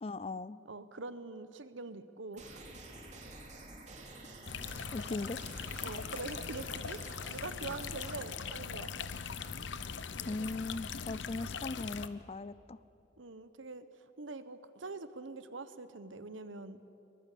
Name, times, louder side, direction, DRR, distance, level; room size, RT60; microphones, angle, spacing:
voice 1, 0.0-0.6 4.9-5.4 10.2-12.8, left 3 dB, 30° left, 17 dB, 0.4 m, -39 dB
voice 2, 0.6-2.6 5.8-7.0 7.3-8.9 13.2-16.8, right 3 dB, 80° right, 13 dB, 1.1 m, -44 dB
sound 1, 2.3-8.3, right 2 dB, 35° right, 3.0 m, -50 dB
sound 2, 4.5-12.1, left 6 dB, 70° left, 0.8 m, -41 dB
23.5 x 21.0 x 8.5 m, 2.9 s
head